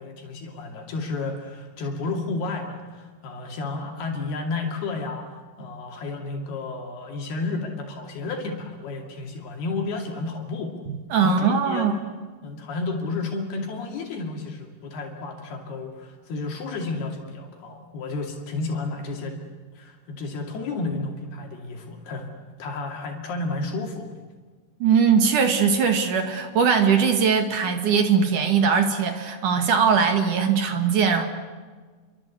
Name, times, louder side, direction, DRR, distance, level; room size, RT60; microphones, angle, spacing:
voice 1, 0.0-10.8 11.2-11.9 12.4-19.4 19.7-22.3 22.6-24.1, left 3 dB, 75° left, 2 dB, 4.5 m, -32 dB
voice 2, 11.1-11.9 24.8-31.2, right 6 dB, 55° right, 6 dB, 3.2 m, -20 dB
29.0 x 24.0 x 8.4 m, 1.4 s
omnidirectional pair, 4.6 m